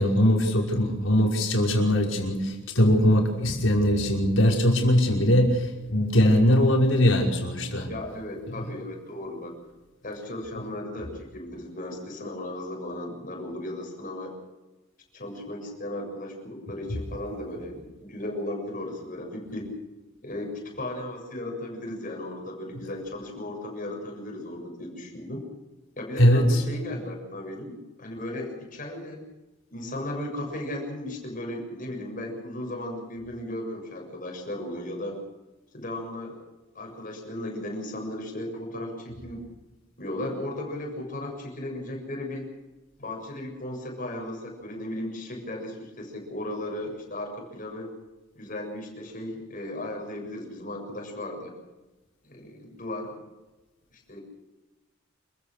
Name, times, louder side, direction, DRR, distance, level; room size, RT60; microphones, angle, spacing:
voice 1, 0.0-7.9 8.5-8.6 26.2-26.6, equal, 85° left, 0 dB, 5.7 m, -21 dB
voice 2, 7.9-9.6 10.0-14.4 15.1-19.7 20.2-25.4 26.0-29.2 29.7-35.2 35.7-36.4 36.8-39.4 40.0-42.5 43.0-47.9 48.3-51.6 52.2-53.1 53.9-54.2, left 1 dB, 45° left, 1 dB, 7.1 m, -36 dB
28.0 x 16.0 x 6.7 m, 1.1 s
head